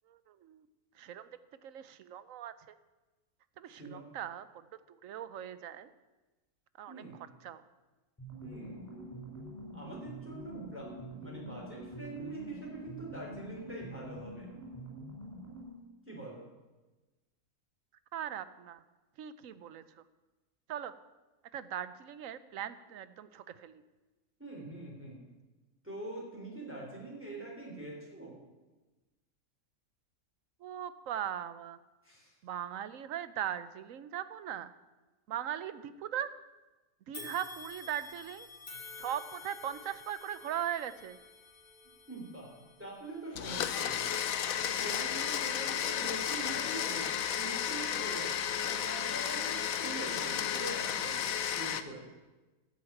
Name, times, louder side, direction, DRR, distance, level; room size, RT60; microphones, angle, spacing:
voice 1, 0.1-0.7 0.9-1.3 1.6-2.8 3.6-5.9 6.8-7.6 18.1-18.8 19.2-20.0 20.7-20.9 21.5-23.8 30.6-31.8 32.4-34.7 35.3-36.3 37.1-38.5 39.0-41.2, right 10 dB, 70° right, 14 dB, 1.1 m, -39 dB
voice 2, 3.7-4.0 6.9-7.2 8.4-9.0 9.7-14.5 16.1-16.5 24.4-25.2 25.8-28.4 32.0-32.3 37.2-37.3 42.1-42.5 42.8-44.2 44.5-47.1 47.3-48.3 48.6-52.1, right 2 dB, 10° right, -4 dB, 3.7 m, -44 dB
sound 1, 8.2-15.8, right 1 dB, 10° left, 4.9 m, -46 dB
sound 2, 37.1-46.5 47.0-47.1 48.1-48.2, left 4 dB, 30° left, 2.1 m, -52 dB
Domestic sounds home sounds, 43.4-51.8, left 9 dB, 70° left, 1.2 m, -33 dB
12.5 x 7.2 x 9.1 m, 1.2 s
omnidirectional pair, 1.5 m